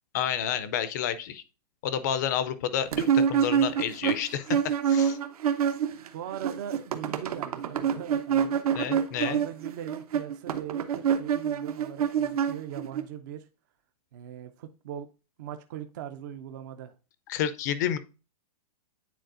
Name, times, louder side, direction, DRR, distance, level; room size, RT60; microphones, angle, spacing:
voice 1, 0.1-1.4 1.8-4.6 4.9-5.2 8.7-9.4 17.3-18.0, left 9 dB, 30° left, 14 dB, 0.5 m, -30 dB
sound 1, 2.9-6.1 6.3-13.0, right 8 dB, 65° right, 0.9 m, -26 dB
voice 2, 6.1-8.8 9.2-13.5 14.1-15.1 15.4-16.9, right 10 dB, 30° right, 8 dB, 0.4 m, -40 dB
9.2 x 4.1 x 2.5 m, 0.31 s
hypercardioid pair, 170°, 20 cm